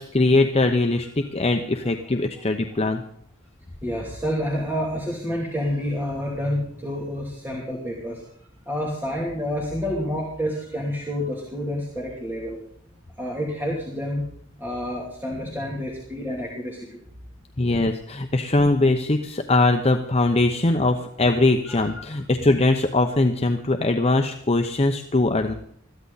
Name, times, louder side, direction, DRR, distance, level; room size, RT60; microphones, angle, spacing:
voice 1, 0.0-3.0 17.6-25.5, left 2 dB, 30° left, 5 dB, 0.9 m, -21 dB
voice 2, 3.8-8.2 8.7-12.6 13.2-14.2 14.6-17.0 21.7-22.0, equal, 10° right, -2 dB, 2.9 m, -29 dB
21.0 x 14.5 x 4.1 m, 0.68 s
head